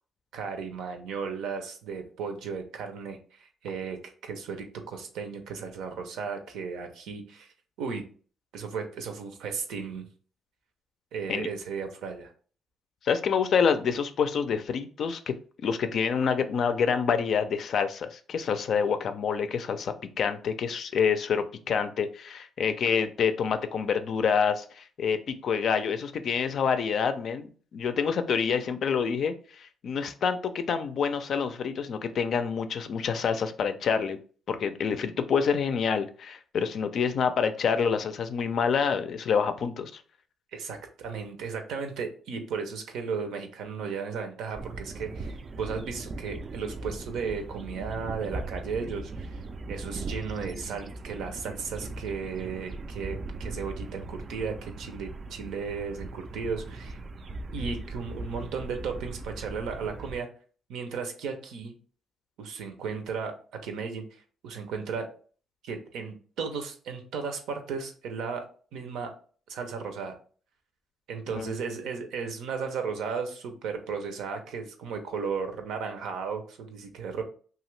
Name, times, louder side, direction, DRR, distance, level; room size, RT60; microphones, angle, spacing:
voice 1, 0.3-7.5 7.8-8.0 8.5-10.1 11.1-12.3 40.5-49.4 49.7-57.0 57.5-60.3 60.7-61.7 62.4-63.3 63.6-65.1 65.6-68.5 68.7-69.1 69.5-70.2 71.1-77.2, right 5 dB, 85° right, 5 dB, 0.6 m, -35 dB
voice 2, 13.0-15.3 15.6-34.2 34.5-40.0 71.3-71.5, left 6 dB, 60° left, 9 dB, 0.4 m, -27 dB
sound 1, 44.6-60.2, right 2 dB, 45° right, 0.3 m, -39 dB
2.8 x 2.4 x 3.1 m, 0.41 s
cardioid pair, 90°, 0 cm